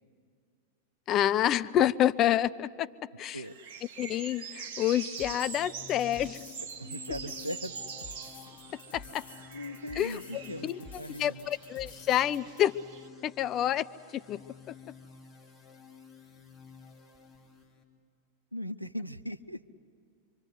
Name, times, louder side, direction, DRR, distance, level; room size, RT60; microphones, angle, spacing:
voice 1, 1.1-2.9 3.2-3.4 4.0-6.4 8.9-9.2 10.0-10.8 11.2-12.7 13.2-13.9 14.1-14.4 14.7-14.8, left 11 dB, 35° left, 12 dB, 0.6 m, -28 dB
sound 1, 3.4-13.1, right 6 dB, 50° right, 1.6 m, -44 dB
sound 2, 5.2-12.6, left 4 dB, 60° left, 1.7 m, -51 dB
sound 3, 5.3-17.8, left 6 dB, 5° left, 3.3 m, -52 dB
voice 2, 6.8-7.7 9.5-11.5 18.5-19.6, equal, 90° right, 10 dB, 0.7 m, -39 dB
27.0 x 24.5 x 8.3 m, 2.4 s
figure-of-eight pair, 90°, 0 cm